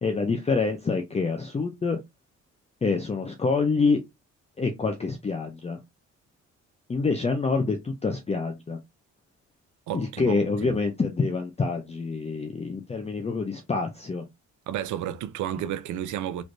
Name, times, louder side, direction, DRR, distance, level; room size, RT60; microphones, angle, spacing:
voice 1, 0.0-2.0 2.8-4.0 4.6-5.8 6.9-8.8 9.9-14.2, left 4 dB, 20° left, 0.5 m, -26 dB
voice 2, 9.9-10.8 14.7-16.4, right 11 dB, 75° right, 0.6 m, -32 dB
3.2 x 3.1 x 2.6 m
cardioid pair, 90°, 30 cm